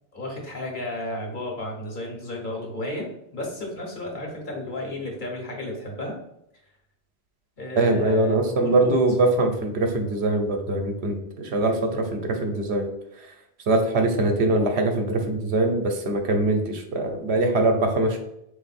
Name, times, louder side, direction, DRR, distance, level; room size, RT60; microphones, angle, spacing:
voice 1, 0.1-6.2 7.6-9.0, left 1 dB, 50° left, 0 dB, 1.1 m, -33 dB
voice 2, 7.8-12.9 13.2-13.3 13.7-18.2, right 2 dB, 75° right, 4 dB, 1.0 m, -22 dB
4.2 x 2.6 x 4.1 m, 0.79 s
omnidirectional pair, 1.1 m